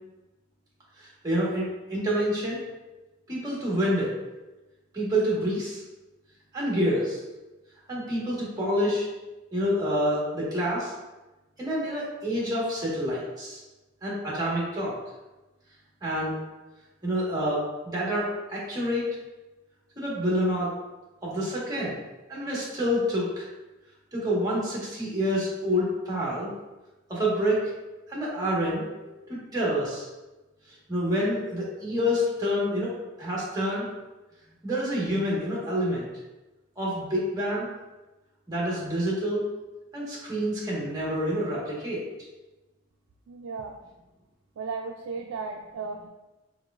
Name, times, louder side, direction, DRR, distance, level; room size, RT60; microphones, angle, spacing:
voice 1, 1.0-2.6 3.3-4.1 4.9-5.8 6.5-7.2 7.9-9.1 9.5-10.9 11.6-13.6 14.0-14.9 16.0-16.4 17.0-19.0 20.0-20.7 21.2-22.0 22.3-23.5 24.1-26.5 27.1-27.7 28.1-30.1 30.9-32.9 33.2-33.8 34.6-36.1 36.8-37.7 38.5-39.4 39.9-42.0, equal, 20° right, -6 dB, 1.4 m, -27 dB
voice 2, 43.3-43.8 44.6-46.1, right 4 dB, 85° right, 2 dB, 0.4 m, -35 dB
4.7 x 4.3 x 2.4 m, 1.1 s
head